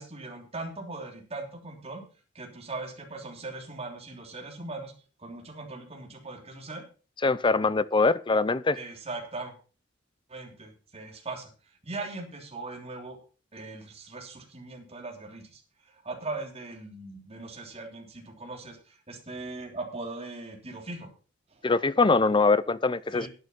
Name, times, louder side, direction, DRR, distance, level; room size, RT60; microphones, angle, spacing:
voice 1, 0.0-2.0 2.3-4.9 5.2-6.8 8.7-9.5 10.3-11.5 11.8-13.2 13.5-21.1 21.5-21.6 23.1-23.3, right 3 dB, 35° right, 3.3 m, -39 dB
voice 2, 7.2-8.8 21.6-23.3, left 3 dB, 25° left, 0.5 m, -23 dB
11.0 x 9.2 x 5.5 m
head